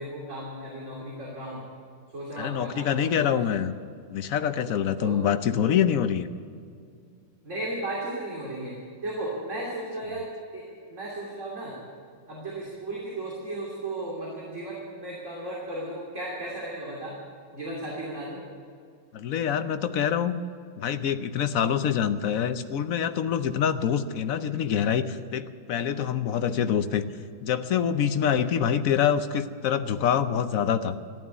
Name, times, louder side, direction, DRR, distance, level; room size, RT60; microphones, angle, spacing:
voice 1, 0.0-1.6 2.1-3.3 5.0-5.2 7.4-8.7 9.0-10.3 10.5-11.8 12.3-17.1 17.5-18.4 28.2-28.5, right 1 dB, 40° right, -4 dB, 3.2 m, -35 dB
voice 2, 2.4-3.7 4.1-6.3 19.1-20.4 20.8-27.0 27.4-30.9, left 8 dB, 65° left, 10 dB, 0.9 m, -25 dB
14.5 x 12.0 x 8.1 m, 2.3 s
omnidirectional pair, 2.0 m